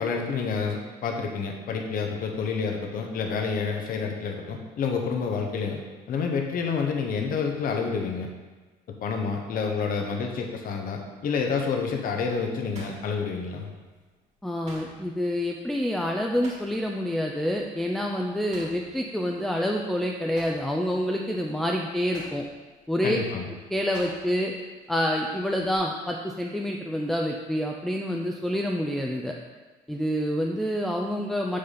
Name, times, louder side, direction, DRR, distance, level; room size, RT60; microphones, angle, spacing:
voice 1, 0.0-5.8 6.1-8.3 9.0-13.7 23.0-23.4, left 5 dB, 55° left, 3 dB, 1.0 m, -28 dB
sound 1, 10.5-10.8 11.4-13.9 14.1-17.1 17.4-17.6 17.9-19.9 20.2-24.6 24.8-25.8, right 2 dB, 45° right, 1.8 m, -49 dB
voice 2, 14.4-22.5 22.9-23.2 23.7-24.5 24.9-29.3 29.9-31.6, equal, ahead, 0 dB, 0.5 m, -27 dB
6.4 x 4.0 x 5.7 m, 1.3 s
cardioid pair, 110°, 17 cm